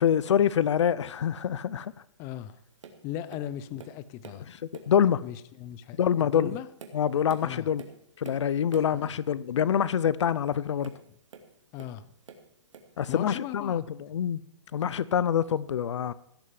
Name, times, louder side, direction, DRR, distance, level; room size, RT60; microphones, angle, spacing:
voice 1, 0.0-1.9 4.9-5.2 6.0-6.5 6.9-7.8 8.2-10.9 13.0-13.8 14.1-14.4 14.7-16.1, left 9 dB, 75° left, 0.6 m, -25 dB
voice 2, 2.2-2.6 3.0-4.5 5.2-6.7 7.4-7.7 8.9-9.2 11.7-12.1 13.1-13.9, left 11 dB, 20° left, 0.5 m, -38 dB
Tap, 2.8-3.0 3.3-4.5 4.7-5.1 5.7-5.9 6.4-9.0 10.8-12.0 12.3-13.0 13.7-13.8, right 5 dB, 80° right, 2.5 m, -48 dB
16.0 x 6.3 x 7.5 m
hypercardioid pair, 160°, 15 cm